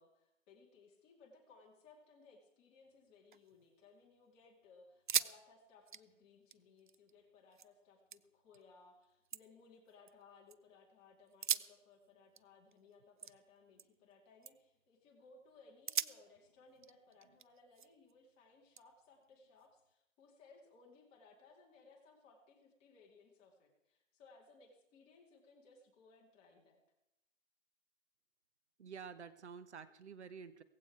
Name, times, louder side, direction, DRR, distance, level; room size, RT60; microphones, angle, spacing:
voice 1, 0.0-26.8, left 4 dB, 15° left, -1 dB, 2.4 m, -63 dB
sound 1, 3.1-4.1 4.4-4.5 4.9-5.4 5.7-7.7 8.1-8.6 9.0-10.6 11.3-14.1 14.4-14.8 15.3-15.4 15.9-18.1 18.8-19.9, right 7 dB, 40° right, 0.5 m, -43 dB
voice 2, 28.8-30.6, right 6 dB, 65° right, 13 dB, 1.2 m, -50 dB
17.5 x 15.5 x 4.7 m, 0.89 s
hypercardioid pair, 165°, 37 cm